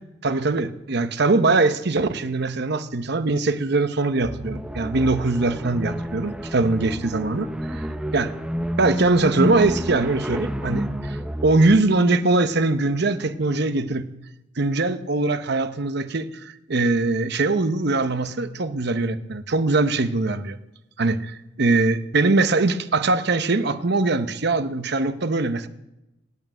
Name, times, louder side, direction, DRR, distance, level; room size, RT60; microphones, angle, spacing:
voice 1, 0.2-8.3 8.8-14.1 14.6-20.6 21.0-25.7, right 3 dB, 60° right, 0.9 m, -22 dB
sound 1, 4.2-11.9, equal, 5° right, 0.7 m, -29 dB
18.5 x 8.6 x 7.7 m
head